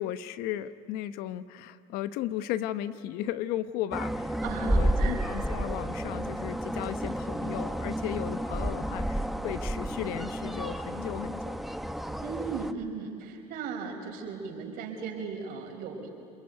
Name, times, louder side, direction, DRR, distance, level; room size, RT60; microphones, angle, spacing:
voice 1, 0.0-11.6, left 12 dB, 75° left, 13 dB, 0.9 m, -35 dB
sound 1, 3.9-12.7, right 1 dB, ahead, 1.3 m, -31 dB
voice 2, 4.4-5.2 12.2-16.1, right 5 dB, 70° right, 2 dB, 5.3 m, -37 dB
28.0 x 21.5 x 9.5 m, 2.3 s
supercardioid pair, 80°, 16 cm